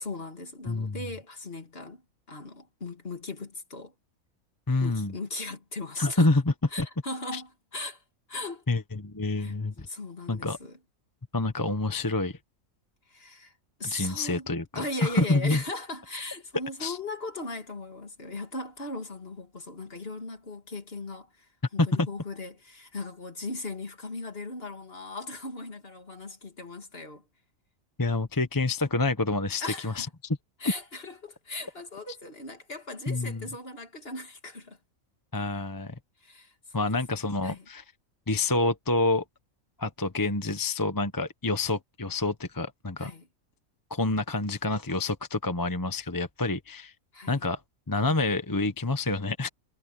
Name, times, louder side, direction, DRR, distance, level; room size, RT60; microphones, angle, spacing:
voice 1, 0.0-2.0 2.3-3.9 4.8-6.3 6.7-8.0 8.3-8.7 9.4-10.8 13.1-14.5 14.7-27.2 29.6-30.1 30.6-34.8 36.2-36.5 36.8-36.9 37.4-37.7 43.0-43.3 47.1-47.5, left 2 dB, 40° left, 2.7 m, -38 dB
voice 2, 4.7-5.1 6.0-6.4 6.8-6.9 7.3-7.4 8.7-9.9 10.3-10.6 11.3-12.4 13.9-15.6 16.8-17.0 22.0-22.1 28.0-30.1 33.1-33.4 35.3-36.0 36.7-37.8 38.3-39.2 39.8-43.1 43.9-46.9 47.3-47.6 47.9-49.5, left 2 dB, 15° left, 0.9 m, -27 dB
omnidirectional pair, 1.5 m